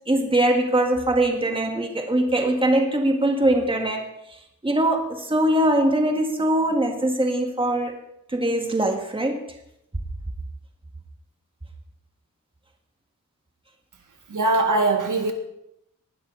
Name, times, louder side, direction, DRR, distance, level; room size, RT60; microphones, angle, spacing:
voice 1, 0.1-4.1 4.6-8.0 8.3-9.4, right 1 dB, 15° right, 3 dB, 2.0 m, -22 dB
voice 2, 14.3-15.3, right 2 dB, 65° right, 4 dB, 1.8 m, -21 dB
19.5 x 11.5 x 4.1 m, 0.80 s
wide cardioid pair, 125°, 33 cm